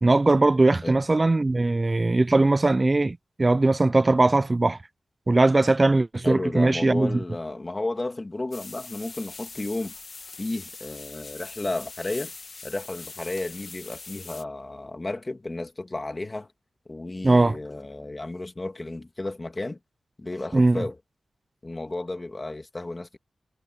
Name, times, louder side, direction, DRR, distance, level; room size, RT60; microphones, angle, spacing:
voice 1, 0.0-4.8 5.3-7.1 17.2-17.6 20.5-20.8, right 2 dB, 25° right, 0.5 m, -20 dB
voice 2, 6.2-9.9 10.4-12.3 12.6-16.5 16.9-19.8 20.2-21.0 21.6-23.2, left 2 dB, 20° left, 2.4 m, -33 dB
sound 1, 8.5-14.4, left 4 dB, 40° left, 1.6 m, -42 dB
wide cardioid pair, 175°, 0 cm